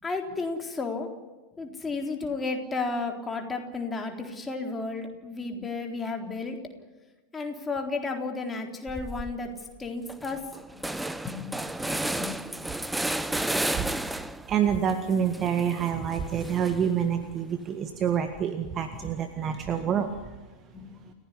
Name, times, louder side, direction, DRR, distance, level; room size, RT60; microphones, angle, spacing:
voice 1, 0.0-1.1 1.6-6.6 7.3-9.5 9.8-10.4 10.7-10.9 11.2-12.3 19.6-19.9 20.7-21.1, left 3 dB, 15° left, 2 dB, 3.8 m, -33 dB
sound 1, 8.9-9.3 9.8-9.9 10.1-14.5 14.9-17.0, right 1 dB, 5° right, 1.2 m, -32 dB
voice 2, 14.5-20.4, right 8 dB, 30° right, 8 dB, 1.8 m, -27 dB
29.5 x 16.5 x 9.8 m, 1.2 s
figure-of-eight pair, 90°, 0 cm